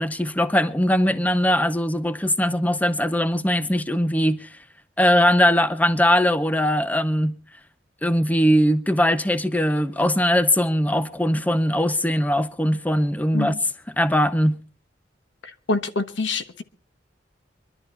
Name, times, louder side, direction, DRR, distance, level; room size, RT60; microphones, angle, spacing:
voice 1, 0.0-4.6 5.0-7.4 8.0-13.5 14.0-14.6, equal, 10° left, 0.6 m, -20 dB
voice 2, 15.4-16.6, left 3 dB, 85° left, 1.3 m, -26 dB
24.0 x 12.0 x 4.2 m
head